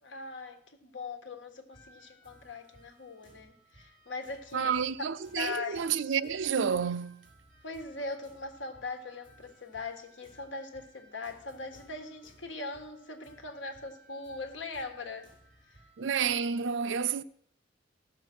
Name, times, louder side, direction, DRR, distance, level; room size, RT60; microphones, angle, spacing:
voice 1, 0.0-4.8 5.3-5.8 7.6-15.3, left 3 dB, 75° left, 1.5 m, -40 dB
sound 1, 1.7-16.4, right 1 dB, 25° left, 5.0 m, -60 dB
voice 2, 4.5-7.3 16.0-17.2, right 7 dB, 75° right, 0.5 m, -30 dB
15.0 x 6.7 x 6.0 m
head